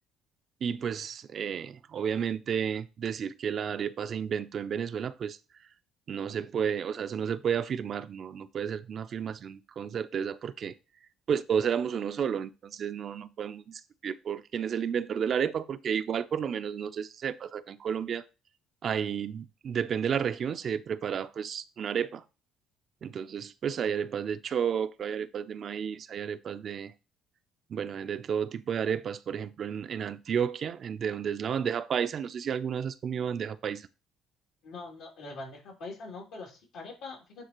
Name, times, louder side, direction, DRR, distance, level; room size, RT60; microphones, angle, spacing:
voice 1, 0.6-5.4 6.1-10.7 11.3-18.2 18.8-22.2 23.0-26.9 27.7-33.9, right 7 dB, 55° right, 0.4 m, -32 dB
voice 2, 34.6-37.5, left 3 dB, 80° left, 2.9 m, -43 dB
9.3 x 3.8 x 3.0 m
cardioid pair, 85°, 0 cm